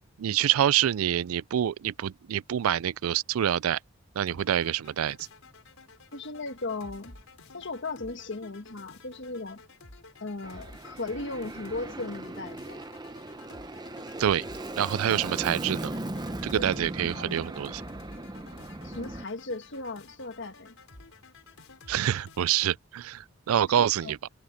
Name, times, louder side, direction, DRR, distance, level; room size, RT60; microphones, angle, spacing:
voice 1, 0.2-3.8 4.2-5.2 14.2-14.4 14.8-15.9 16.4-17.8 21.9-24.3, right 10 dB, 80° right, 0.4 m, -26 dB
sound 1, 4.3-22.7, left 3 dB, 75° left, 4.7 m, -51 dB
voice 2, 6.1-7.2 7.5-9.6 10.2-12.8 16.5-16.7 17.1-17.6 18.8-20.7 23.6-24.1, left 3 dB, 55° left, 1.5 m, -37 dB
Aircraft, 10.4-19.2, right 2 dB, 20° right, 0.8 m, -38 dB
head